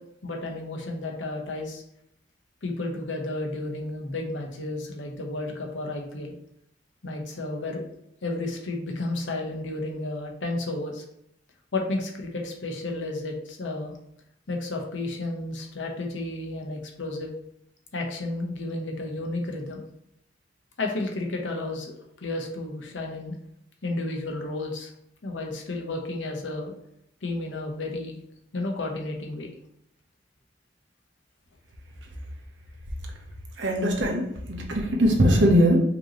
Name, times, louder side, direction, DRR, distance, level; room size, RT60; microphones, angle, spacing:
voice 1, 0.2-1.8 2.6-6.3 7.0-7.8 8.2-11.0 11.7-13.9 14.5-17.3 17.9-19.8 20.8-21.9 22.2-23.3 23.8-24.9 25.2-26.7 27.2-28.2 28.5-29.5, left 2 dB, 85° left, 1 dB, 0.9 m, -32 dB
voice 2, 33.6-35.8, equal, 75° right, 1 dB, 0.9 m, -21 dB
5.2 x 2.9 x 3.0 m, 0.76 s
head